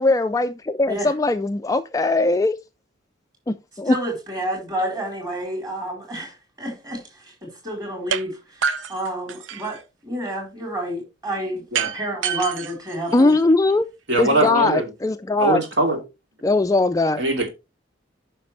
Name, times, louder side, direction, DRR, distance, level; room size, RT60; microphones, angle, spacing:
voice 1, 0.0-2.6 3.5-4.0 13.1-13.9 14.2-15.6 16.4-17.2, left 2 dB, 15° left, 0.3 m, -20 dB
voice 2, 3.9-7.0 7.4-13.3 14.3-14.5, right 1 dB, 20° right, 4.0 m, -30 dB
sound 1, 8.1-8.2 8.6-9.8 11.7-13.7, right 6 dB, 75° right, 0.7 m, -28 dB
voice 3, 14.1-14.9 15.4-16.0 17.2-17.5, right 2 dB, 60° right, 2.7 m, -21 dB
9.5 x 5.9 x 3.3 m
head